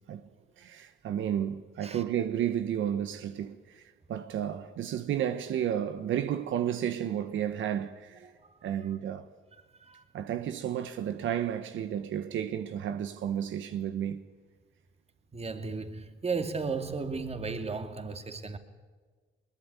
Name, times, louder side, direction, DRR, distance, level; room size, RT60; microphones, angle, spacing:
voice 1, 0.6-3.8 4.1-8.3 8.6-9.2 10.1-14.2, right 10 dB, 75° right, 1.3 m, -32 dB
voice 2, 15.3-18.6, right 4 dB, 30° right, 2.6 m, -34 dB
21.5 x 20.5 x 9.7 m
cardioid pair, 90°, 20 cm